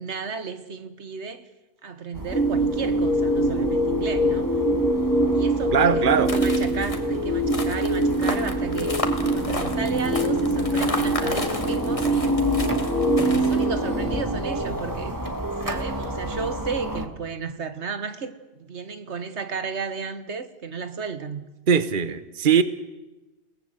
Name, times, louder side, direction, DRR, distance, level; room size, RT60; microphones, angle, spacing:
voice 1, 0.0-1.4 1.8-4.5 4.9-12.4 12.9-15.4 15.6-21.4, right 5 dB, 80° right, 1.7 m, -34 dB
sound 1, 2.1-17.1, right 1 dB, 15° right, 2.0 m, -32 dB
sound 2, 2.3-14.2, right 1 dB, 5° left, 3.7 m, -24 dB
voice 2, 5.7-6.3 21.7-22.6, right 7 dB, 50° right, 1.2 m, -20 dB
sound 3, 6.3-13.6, left 2 dB, 30° left, 2.1 m, -33 dB
29.5 x 18.0 x 8.0 m
omnidirectional pair, 1.1 m